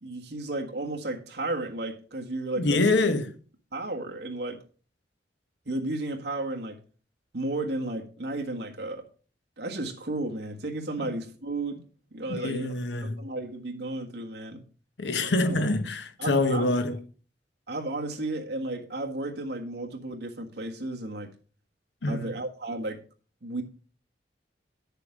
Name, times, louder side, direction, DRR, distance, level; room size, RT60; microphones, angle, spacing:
voice 1, 0.0-2.9 3.7-4.6 5.6-6.8 7.3-9.0 9.6-11.8 12.1-12.7 13.0-14.6 15.4-15.6 16.2-16.7 17.7-21.3 22.1-23.0 23.4-23.6, right 2 dB, 70° right, 1.6 m, -33 dB
voice 2, 2.6-3.4 11.0-11.2 12.3-13.3 15.0-17.0 22.0-22.3, left 2 dB, 80° left, 1.0 m, -26 dB
9.6 x 6.7 x 5.1 m
head